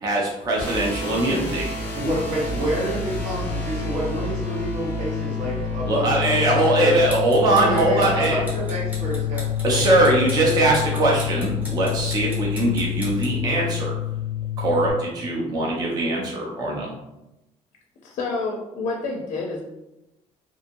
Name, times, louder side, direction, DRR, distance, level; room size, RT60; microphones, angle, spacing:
voice 1, 0.0-1.7 5.9-8.4 9.6-13.9 14.6-16.9, right 2 dB, 30° right, -2 dB, 0.4 m, -21 dB
sound 1, 0.6-14.9, left 7 dB, 15° left, 0.7 m, -28 dB
voice 2, 2.0-7.0 7.5-10.2, right 1 dB, 75° right, -6 dB, 1.1 m, -28 dB
sound 2, 6.9-13.4, equal, 15° right, 1.0 m, -39 dB
voice 3, 18.0-19.6, left 3 dB, 55° left, -1 dB, 0.4 m, -28 dB
2.6 x 2.6 x 2.6 m, 0.93 s
cardioid pair, 175°, 13 cm